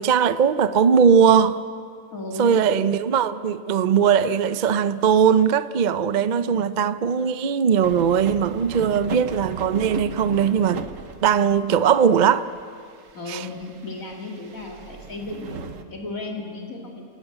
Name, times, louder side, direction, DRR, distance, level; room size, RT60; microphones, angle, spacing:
voice 1, 0.0-1.6 2.4-10.8 11.2-12.5 13.3-13.4, right 7 dB, 50° right, 0.6 m, -19 dB
voice 2, 2.1-2.7 6.5-7.0 13.1-17.0, left 2 dB, 75° left, 3.1 m, -35 dB
sound 1, 7.8-11.7 11.9-15.8, right 5 dB, 70° right, 1.5 m, -37 dB
27.5 x 14.5 x 9.0 m
omnidirectional pair, 1.4 m